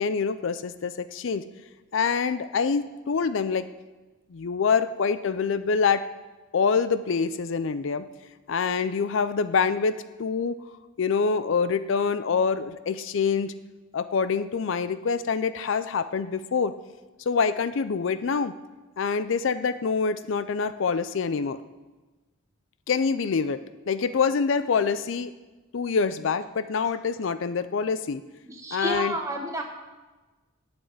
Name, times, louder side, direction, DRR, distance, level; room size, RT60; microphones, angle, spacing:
voice 1, 0.0-1.4 1.9-3.6 4.3-6.0 6.5-8.1 8.5-10.6 11.0-13.5 13.9-16.7 17.3-18.5 19.0-21.6 22.9-23.6 23.9-25.3 25.7-28.2 28.7-29.2, left 5 dB, 65° left, 13 dB, 0.4 m, -25 dB
voice 2, 28.5-29.6, right 1 dB, 15° right, 2 dB, 1.3 m, -30 dB
7.9 x 7.8 x 8.7 m, 1.2 s
head